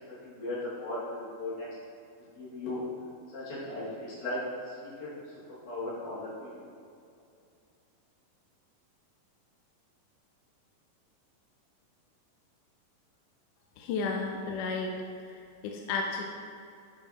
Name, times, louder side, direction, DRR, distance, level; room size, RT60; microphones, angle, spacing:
voice 1, 0.1-1.7 2.4-2.9 3.3-4.4 4.7-5.1 5.6-6.6, left 2 dB, 60° left, -8 dB, 3.3 m, -37 dB
voice 2, 13.8-14.9 15.6-16.2, left 4 dB, 80° left, 1 dB, 1.9 m, -32 dB
10.5 x 5.5 x 2.9 m, 2.5 s
omnidirectional pair, 4.1 m